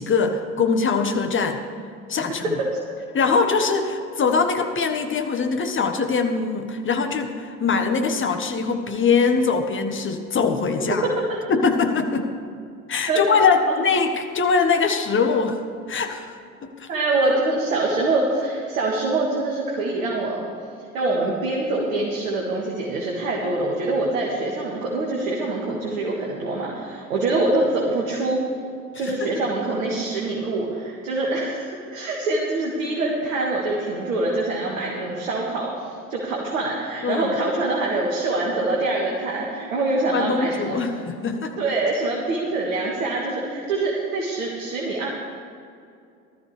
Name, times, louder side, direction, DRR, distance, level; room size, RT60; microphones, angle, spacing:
voice 1, 0.0-1.6 2.1-2.6 3.1-11.1 11.5-12.3 12.9-15.6 15.9-16.3 16.6-16.9 28.9-29.3 37.0-37.4 40.1-41.5, left 5 dB, 30° left, 6 dB, 1.5 m, -22 dB
voice 2, 16.9-20.5 20.9-28.4 29.0-40.8 41.6-45.1, right 2 dB, 75° right, -3 dB, 2.0 m, -24 dB
19.0 x 13.0 x 3.4 m, 2.4 s
figure-of-eight pair, 60°, 42 cm